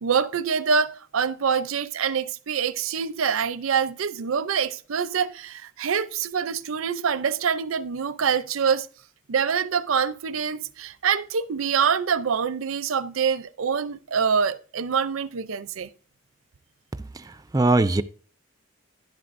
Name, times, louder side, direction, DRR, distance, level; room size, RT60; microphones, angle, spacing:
voice 1, 0.0-8.9 9.3-15.9, right 6 dB, 90° right, 0.5 m, -25 dB
voice 2, 17.0-18.0, right 2 dB, 15° right, 0.3 m, -22 dB
11.0 x 11.0 x 2.6 m
head